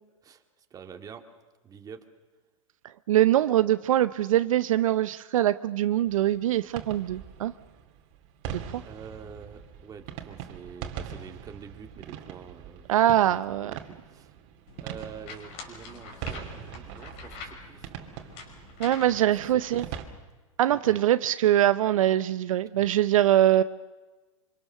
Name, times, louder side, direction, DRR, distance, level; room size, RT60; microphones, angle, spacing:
voice 1, 0.7-1.2 1.6-2.0 8.8-14.3 14.8-17.9 19.0-19.2 19.5-19.8 20.7-21.0 22.7-22.9, right 7 dB, 20° right, 5 dB, 2.1 m, -46 dB
voice 2, 3.1-7.5 8.5-8.8 12.9-13.7 18.8-19.9 20.6-23.6, right 12 dB, 70° right, 13 dB, 0.7 m, -23 dB
sound 1, 6.0-20.1, right 8 dB, 45° right, 2.7 m, -42 dB
sound 2, 14.7-20.0, left 4 dB, 50° left, 5.4 m, -45 dB
26.5 x 25.5 x 6.7 m, 1.3 s
hypercardioid pair, 120°, 18 cm